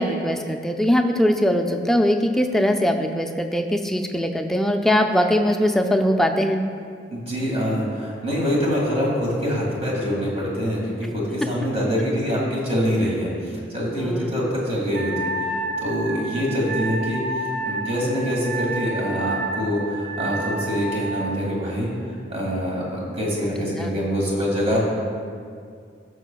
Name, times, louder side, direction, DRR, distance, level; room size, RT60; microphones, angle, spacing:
voice 1, 0.0-6.6 14.0-14.3 23.4-23.5 23.8-23.9, equal, ahead, 4 dB, 0.3 m, -21 dB
voice 2, 7.1-17.2 17.6-21.9 22.3-24.8, equal, 35° right, -4 dB, 1.9 m, -25 dB
Wind instrument woodwind instrument, 14.9-21.3, right 2 dB, 65° right, 0.8 m, -29 dB
13.5 x 6.5 x 2.3 m, 2.2 s
head